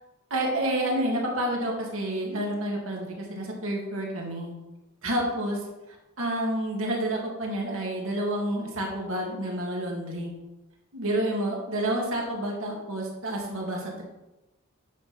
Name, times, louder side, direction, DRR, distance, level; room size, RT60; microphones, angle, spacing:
voice 1, 0.3-4.5 5.0-10.3 10.9-14.0, right 1 dB, 65° right, -1 dB, 2.7 m, -29 dB
10.5 x 7.5 x 5.5 m, 1.0 s
head